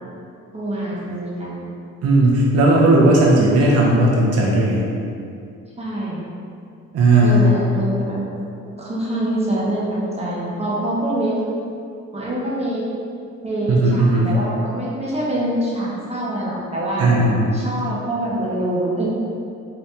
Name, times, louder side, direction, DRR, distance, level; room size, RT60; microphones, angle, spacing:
voice 1, 0.5-1.7 5.8-6.2 7.2-8.2 8.8-11.4 12.1-12.9 13.4-17.2 17.5-19.0, right 1 dB, 20° right, -6 dB, 0.8 m, -25 dB
voice 2, 2.0-4.8 6.9-7.5 13.7-14.3 17.0-17.6, right 2 dB, 55° right, -3 dB, 0.6 m, -15 dB
2.8 x 2.5 x 3.2 m, 2.4 s
cardioid pair, 90°, 30 cm